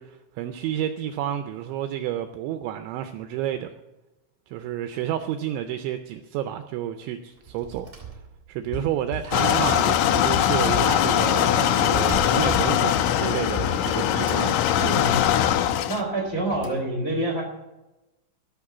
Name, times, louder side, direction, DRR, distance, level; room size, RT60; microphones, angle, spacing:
voice 1, 0.0-3.8 4.5-8.2 8.5-14.6 14.8-15.0, right 11 dB, 85° right, 8 dB, 2.7 m, -30 dB
sound 1, 7.3-8.7 9.2-10.5 10.7-10.8 11.0-13.3 13.8-14.8 15.2-15.3 15.5-15.6 16.1-16.7, right 6 dB, 25° right, 1.1 m, -40 dB
sound 2, 8.6-11.6 11.9-13.9, left 2 dB, 65° left, 5.1 m, -37 dB
sound 3, 9.3-16.0, left 10 dB, 80° left, 2.7 m, -21 dB
voice 2, 15.9-17.4, right 2 dB, 35° left, -1 dB, 1.3 m, -27 dB
14.5 x 6.8 x 7.1 m, 1.0 s
omnidirectional pair, 5.8 m